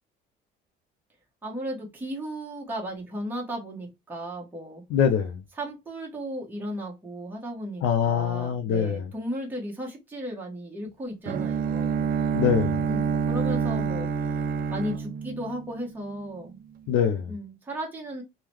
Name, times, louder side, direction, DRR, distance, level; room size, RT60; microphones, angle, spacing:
voice 1, 1.4-4.8 5.6-12.1 12.8-14.1 14.7-16.6 17.3-18.2, equal, 10° right, 0.9 m, -35 dB
voice 2, 4.9-5.4 7.8-9.1 12.3-12.8 16.9-17.3, left 8 dB, 70° left, 0.5 m, -24 dB
Bowed string instrument, 11.3-16.2, right 6 dB, 45° right, 0.4 m, -27 dB
3.7 x 2.1 x 3.0 m
cardioid pair, 170°, 21 cm